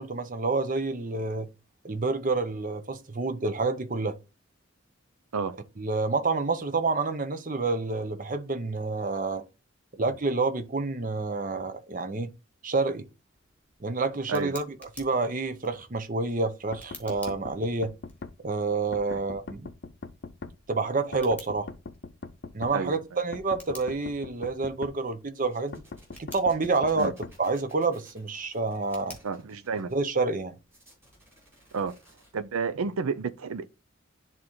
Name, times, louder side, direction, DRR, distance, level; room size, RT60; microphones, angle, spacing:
voice 1, 0.0-1.5 1.8-4.1 5.8-9.4 10.0-12.3 12.6-13.0 13.8-17.9 18.4-19.7 20.7-21.7 22.5-25.8 26.2-29.2 29.9-30.6, right 3 dB, 40° right, 0.7 m, -28 dB
Tick, 13.3-33.0, left 3 dB, 5° left, 1.4 m, -54 dB
sound 1, 16.7-18.3 18.9-20.5 21.1-22.8 23.3-25.0 25.7-27.4, left 3 dB, 50° left, 0.5 m, -41 dB
sound 2, 25.5-30.0 30.7-32.3, right 1 dB, 10° right, 4.2 m, -58 dB
voice 2, 29.2-29.9 31.7-32.0 32.3-33.7, right 5 dB, 85° right, 0.5 m, -30 dB
11.0 x 3.6 x 3.1 m
head